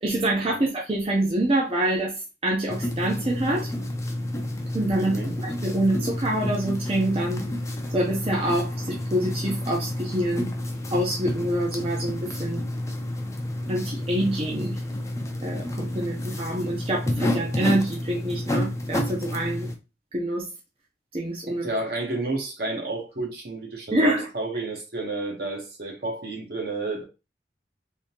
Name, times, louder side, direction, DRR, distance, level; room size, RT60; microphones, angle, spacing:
voice 1, 0.0-3.7 4.7-7.4 7.9-10.5 10.9-12.6 13.7-14.8 15.4-19.7 20.1-20.5 21.1-21.7 23.9-24.3, right 1 dB, 30° right, 0.5 m, -26 dB
sound 1, 2.7-19.7, left 1 dB, 15° left, 0.4 m, -30 dB
voice 2, 5.0-5.3 21.5-27.0, right 2 dB, 60° right, 1.0 m, -31 dB
3.6 x 2.7 x 2.8 m
head